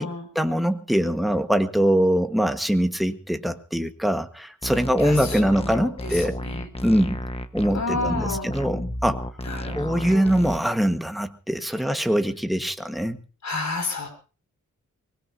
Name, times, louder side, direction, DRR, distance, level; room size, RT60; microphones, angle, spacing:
voice 1, 0.3-6.4 6.8-7.2 7.5-9.3 9.6-13.2, equal, ahead, 7 dB, 1.4 m, -23 dB
sound 1, 4.6-10.6, left 1 dB, 20° left, 1.3 m, -32 dB
voice 2, 5.0-6.7 7.7-8.5 9.4-10.3 13.4-14.1, left 3 dB, 65° left, 4 dB, 5.9 m, -31 dB
24.0 x 20.0 x 2.8 m, 0.35 s
wide cardioid pair, 85°, 31 cm